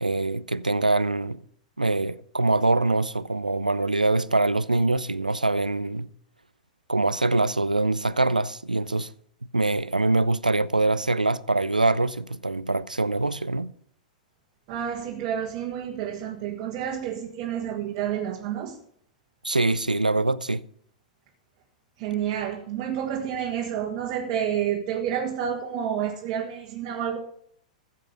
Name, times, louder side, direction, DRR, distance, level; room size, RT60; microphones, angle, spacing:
voice 1, 0.0-1.4 1.8-6.1 6.9-9.1 9.5-13.7 19.4-20.6, right 2 dB, 90° right, 0.5 m, -24 dB
voice 2, 14.7-18.8 22.0-27.2, right 9 dB, 40° right, 1.8 m, -29 dB
15.0 x 7.5 x 5.4 m
figure-of-eight pair, 100°, 4 cm